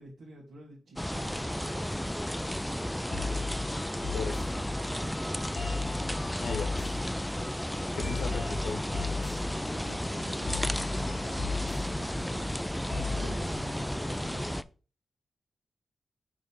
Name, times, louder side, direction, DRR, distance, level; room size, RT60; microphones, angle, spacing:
voice 1, 0.0-1.5 8.3-8.6 9.6-14.5, right 2 dB, 65° right, -3 dB, 2.0 m, -47 dB
sound 1, 1.0-14.6, equal, 5° left, 0.3 m, -33 dB
sound 2, 2.4-13.4, left 4 dB, 40° left, 2.0 m, -37 dB
voice 2, 4.1-4.5 6.4-6.7 7.9-8.8, left 4 dB, 75° left, 7 dB, 1.2 m, -36 dB
6.3 x 3.7 x 5.6 m, 0.35 s
wide cardioid pair, 130°, 0 cm